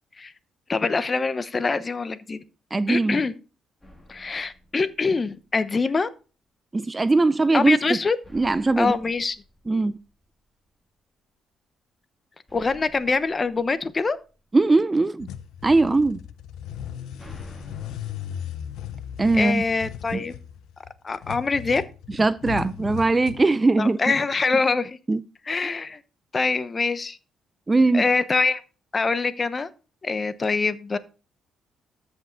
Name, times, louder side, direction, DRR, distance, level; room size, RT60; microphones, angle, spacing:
voice 1, 0.7-2.4 2.9-3.3 4.1-6.1 7.5-8.2 8.8-9.4 12.5-14.2 19.3-20.4 21.0-21.8 23.8-25.0 25.5-26.0 26.3-27.2 27.9-28.6 28.9-29.7 30.0-31.0, left 4 dB, 30° left, 0.9 m, -24 dB
voice 2, 2.7-3.2 6.7-8.0 8.3-9.0 9.7-10.0 14.5-15.3 15.6-16.2 19.2-19.6 20.1-20.2 22.2-24.0 25.1-25.2 27.7-28.1, right 3 dB, 20° right, 0.5 m, -20 dB
sound 1, 3.8-5.7 8.2-10.6 12.5-14.7 16.7-19.8, left 1 dB, 10° left, 2.7 m, -51 dB
sound 2, 15.2-23.5, left 9 dB, 85° left, 0.7 m, -37 dB
13.5 x 5.4 x 3.9 m
cardioid pair, 90°, 0 cm